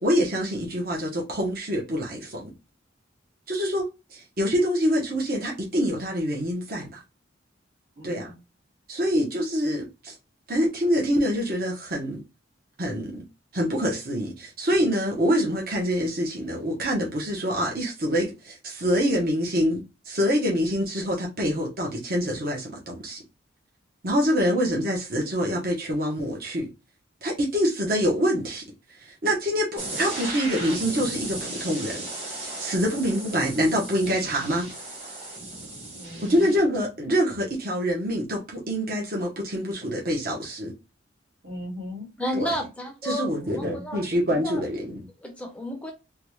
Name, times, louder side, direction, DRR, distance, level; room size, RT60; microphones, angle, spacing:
voice 1, 0.0-2.5 3.5-7.0 8.0-8.3 8.9-10.2 10.5-12.2 12.8-13.2 13.5-23.2 24.0-26.7 27.2-28.6 29.0-32.0 32.4-34.7 36.3-40.7 42.3-42.5 43.0-45.1, equal, 50° right, 1.0 m, -25 dB
voice 2, 8.0-8.4 36.0-36.5 41.4-42.1 43.3-43.8, left 1 dB, 80° right, 1.9 m, -38 dB
sound 1, 29.8-36.6, right 2 dB, 30° right, 1.4 m, -36 dB
voice 3, 42.2-44.0 44.3-44.6 45.2-45.9, equal, 5° left, 0.5 m, -32 dB
3.6 x 2.3 x 3.1 m
head